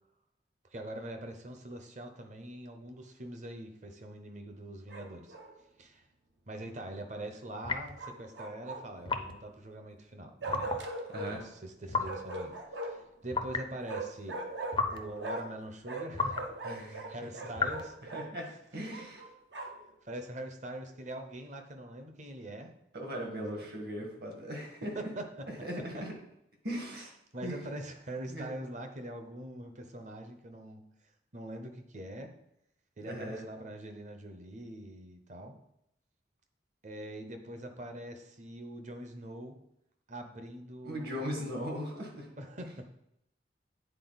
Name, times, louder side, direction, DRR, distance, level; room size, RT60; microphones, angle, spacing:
voice 1, 0.7-5.3 5.8-6.1 6.5-10.7 11.3-14.4 14.9-16.5 16.9-18.0 19.6-19.7 20.0-22.7 23.4-23.7 24.9-25.5 25.9-26.0 27.3-30.8 31.3-32.3 33.0-35.6 36.8-39.6 40.1-41.5 42.4-42.9, right 1 dB, 40° right, 6 dB, 0.8 m, -43 dB
Bark, 4.9-5.5 8.0-9.1 10.4-11.3 12.0-13.1 13.8-15.6 15.8-18.3 18.9-19.9, right 2 dB, 75° right, 0.9 m, -40 dB
sound 1, 7.6-8.0 9.1-9.4 10.5-10.9 11.9-12.2 13.3-13.7 14.7-15.1 16.1-16.5 17.6-17.9, left 4 dB, 25° left, 0.4 m, -33 dB
voice 2, 11.1-11.4 16.6-17.3 18.1-19.2 22.9-25.1 25.6-26.1 26.6-27.1 27.4-27.6 28.3-28.5 33.1-33.5 40.8-42.3, equal, 55° right, 1 dB, 1.7 m, -38 dB
9.0 x 4.2 x 4.0 m, 0.80 s
head